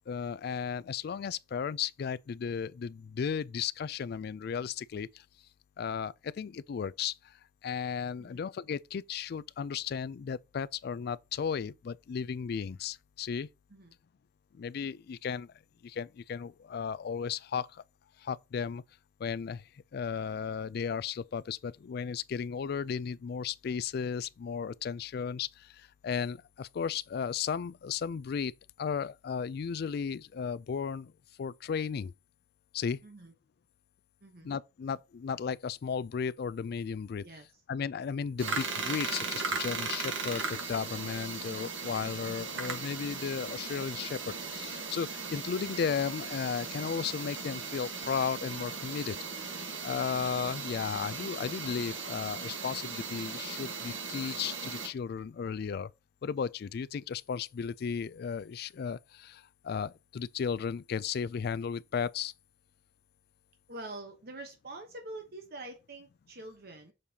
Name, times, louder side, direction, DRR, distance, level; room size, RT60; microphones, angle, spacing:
voice 1, 0.1-5.2 5.8-7.3 7.6-13.5 14.5-15.5 15.8-17.8 18.2-18.8 19.2-19.6 19.9-28.5 28.8-31.1 31.4-32.1 32.7-33.0 34.4-37.2 37.7-49.2 49.8-55.9 56.2-62.3, left 6 dB, 55° left, 0.3 m, -35 dB
voice 2, 33.0-33.3 34.2-34.5 37.2-37.6 42.2-42.5 63.7-66.9, right 2 dB, 55° right, 1.0 m, -46 dB
sound 1, 38.4-54.9, right 4 dB, 90° right, 1.5 m, -37 dB
6.5 x 5.4 x 2.8 m
head